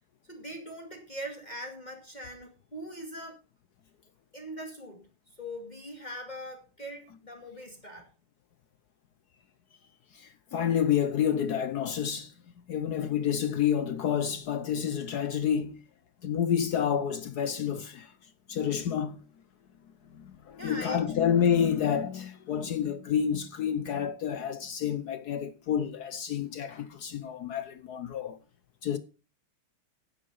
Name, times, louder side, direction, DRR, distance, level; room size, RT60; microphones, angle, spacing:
voice 1, 0.2-3.4 4.3-5.0 5.3-8.1 20.6-21.3, equal, 20° left, 2.4 m, -41 dB
voice 2, 10.1-15.8 16.2-18.1 18.5-19.2 20.1-28.4 28.8-29.0, left 8 dB, 65° left, 1.0 m, -29 dB
10.5 x 9.2 x 5.4 m
omnidirectional pair, 2.4 m